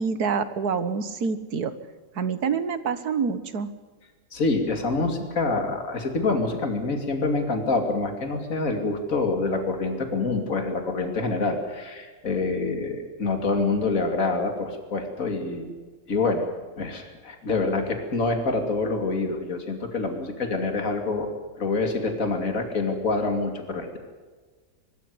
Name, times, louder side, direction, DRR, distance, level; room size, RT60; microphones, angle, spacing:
voice 1, 0.0-1.7 2.2-3.7, right 5 dB, 85° right, 12 dB, 1.9 m, -26 dB
voice 2, 4.3-15.7 16.1-16.4 16.8-21.3 21.6-24.0, left 3 dB, 60° left, 5 dB, 3.0 m, -26 dB
23.5 x 13.5 x 9.5 m, 1.4 s
omnidirectional pair, 1.6 m